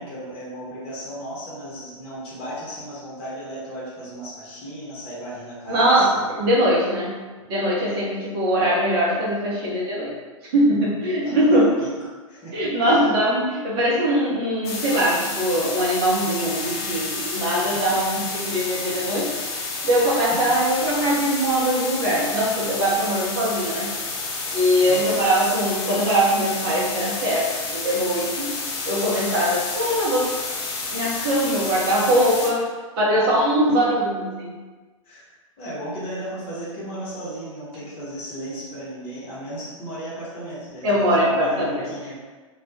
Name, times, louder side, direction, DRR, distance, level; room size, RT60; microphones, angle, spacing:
voice 1, 0.0-6.2 7.2-7.5 11.1-13.1 16.4-16.5 17.3-17.4 17.7-18.1 20.5-20.6 24.8-25.1 33.7-33.8 35.0-42.1, right 1 dB, 35° left, -8 dB, 0.8 m, -35 dB
voice 2, 5.7-7.1 7.5-10.1 10.5-11.6 12.5-19.3 19.8-23.9 24.5-28.5 28.9-30.2 30.9-32.6 33.0-34.5 40.8-41.9, equal, 50° right, -5 dB, 0.7 m, -21 dB
sound 1, 14.6-32.5, left 3 dB, 50° left, 0.5 m, -30 dB
2.2 x 2.1 x 2.6 m, 1.4 s
figure-of-eight pair, 100°, 17 cm